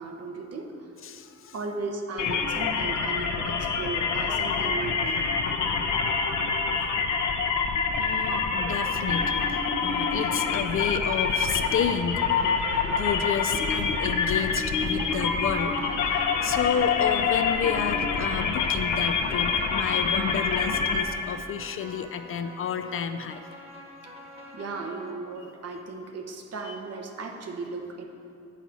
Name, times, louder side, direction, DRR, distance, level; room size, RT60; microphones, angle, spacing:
voice 1, 0.0-0.9 1.5-5.3 10.3-10.4 24.0-24.1 24.5-28.0, right 3 dB, 55° right, 3 dB, 1.0 m, -36 dB
voice 2, 1.0-1.6 5.9-6.1 6.8-7.0 8.0-12.2 13.0-23.4 26.7-26.8, left 7 dB, 45° left, 9 dB, 0.5 m, -31 dB
sound 1, 2.2-21.0, left 5 dB, 70° left, 0.9 m, -26 dB
sound 2, 11.3-25.0, equal, 20° right, 1.3 m, -46 dB
7.9 x 5.6 x 6.1 m, 2.8 s
cardioid pair, 90°, 30 cm